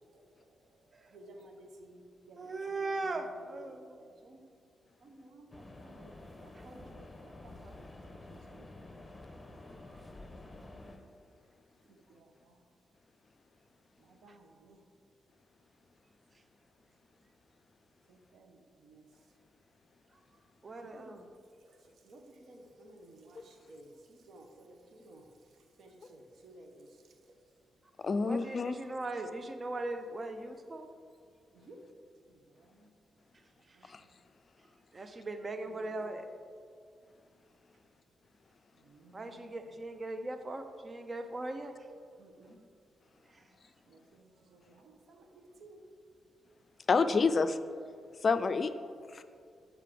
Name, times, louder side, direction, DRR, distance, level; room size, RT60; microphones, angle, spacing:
voice 1, 0.1-0.6 0.9-4.5 5.0-6.1 6.4-8.0 8.3-8.7 11.9-12.6 14.0-14.8 18.1-19.0 20.8-21.2 21.6-25.3 25.5-27.4 31.5-31.9 32.3-32.9 33.7-34.2 35.7-36.3 38.7-39.5 42.2-42.6 43.4-43.5 43.9-45.8 48.8-49.2, right 1 dB, 65° right, 4 dB, 1.0 m, -56 dB
voice 2, 2.4-4.0 6.5-6.6 9.9-10.0 20.6-21.3 28.2-30.9 33.7-33.9 34.9-36.3 39.1-41.8 43.3-43.4, right 2 dB, 40° right, 8 dB, 0.7 m, -39 dB
sound 1, 5.5-11.0, left 2 dB, 20° left, 0.9 m, -50 dB
voice 3, 28.0-28.7 46.9-47.6 48.2-48.7 49.1-49.2, left 4 dB, 50° left, 11 dB, 0.4 m, -27 dB
7.4 x 5.0 x 5.1 m, 2.3 s
supercardioid pair, 45°, 0 cm